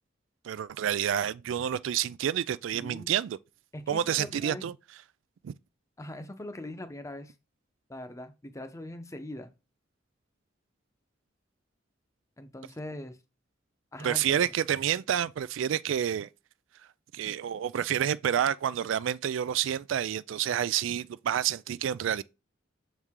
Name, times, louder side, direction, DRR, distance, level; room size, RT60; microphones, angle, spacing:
voice 1, 0.4-3.4 3.9-4.7 5.4-5.5 14.0-16.3 17.1-22.2, right 9 dB, 85° right, 0.3 m, -29 dB
voice 2, 2.7-3.1 3.7-4.6 6.0-7.3 7.9-9.5 12.4-13.2 13.9-14.5, left 1 dB, 15° left, 0.7 m, -41 dB
6.6 x 4.6 x 3.6 m
head